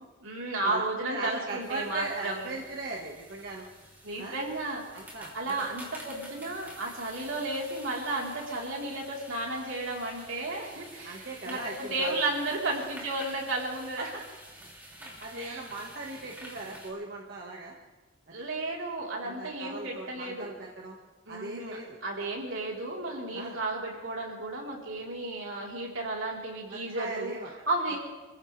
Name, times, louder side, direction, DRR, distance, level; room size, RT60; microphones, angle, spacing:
voice 1, 0.2-2.5 4.0-4.8 5.3-11.2 11.5-14.1 15.4-15.6 18.3-20.5 21.3-21.8 22.0-27.3 27.7-28.0, right 2 dB, 75° right, -2 dB, 3.8 m, -33 dB
voice 2, 1.1-3.7 4.2-4.4 4.9-5.7 11.0-12.2 14.0-14.2 15.0-17.8 18.3-18.4 19.2-21.0 21.3-22.0 23.3-23.6 26.7-27.5 27.9-28.0, right 2 dB, 50° right, -2 dB, 1.5 m, -39 dB
sound 1, 1.6-16.9, right 1 dB, 10° right, 2.6 m, -49 dB
25.5 x 15.5 x 3.3 m, 1.2 s
head